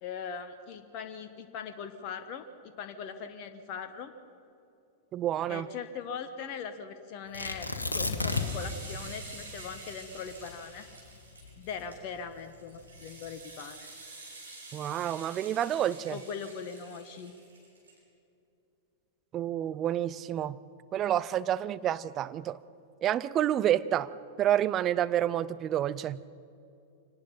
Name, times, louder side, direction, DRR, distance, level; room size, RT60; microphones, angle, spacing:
voice 1, 0.0-4.1 5.5-10.9 11.6-13.9 16.1-17.3, left 6 dB, 40° left, 9 dB, 1.2 m, -40 dB
voice 2, 5.1-5.7 14.7-16.2 19.3-20.6 20.9-22.6 23.0-24.1 24.4-26.2, right 11 dB, 30° right, 16 dB, 0.6 m, -29 dB
Tearing, 7.3-8.7 9.0-9.1 9.7-12.0 12.7-13.2, left 3 dB, 80° left, 1.7 m, -32 dB
sound 1, 8.2-18.0, right 3 dB, 75° right, 5.3 m, -48 dB
25.0 x 18.5 x 5.6 m, 2.7 s
figure-of-eight pair, 95°, 0 cm